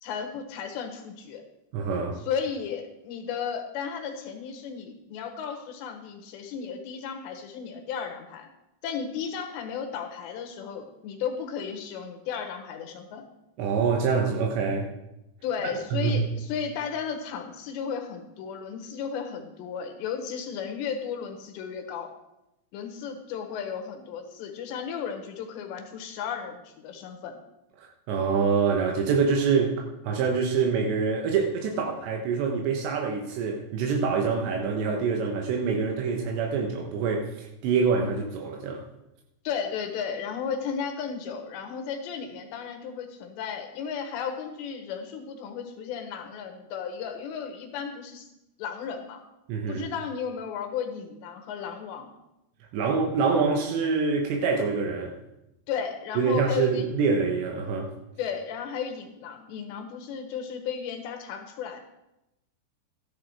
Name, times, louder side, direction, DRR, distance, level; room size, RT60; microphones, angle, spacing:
voice 1, 0.0-1.4 2.3-8.5 8.8-13.3 15.4-22.1 22.7-27.4 39.5-48.3 48.6-49.2 49.7-52.1 55.7-56.9 58.2-61.8, left 7 dB, 80° left, 6 dB, 3.5 m, -34 dB
voice 2, 1.7-2.2 13.6-14.9 15.9-16.3 28.1-38.8 49.5-49.9 52.7-55.1 56.2-57.9, right 5 dB, 80° right, 1 dB, 3.4 m, -25 dB
13.5 x 10.5 x 4.8 m, 0.89 s
omnidirectional pair, 5.1 m